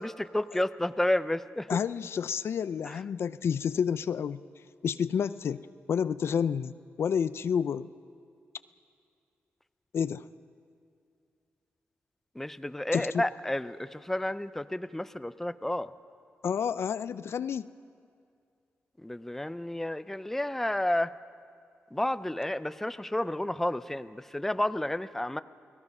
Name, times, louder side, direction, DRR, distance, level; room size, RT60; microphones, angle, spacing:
voice 1, 0.0-1.8 2.9-3.0 12.4-15.9 19.0-21.1 21.9-25.4, left 1 dB, 5° left, 13 dB, 0.5 m, -31 dB
voice 2, 1.7-4.4 4.8-7.9 9.9-10.2 12.9-13.3 16.4-17.7, left 7 dB, 70° left, 14 dB, 0.5 m, -30 dB
29.5 x 18.5 x 5.5 m, 2.3 s
cardioid pair, 95°, 4 cm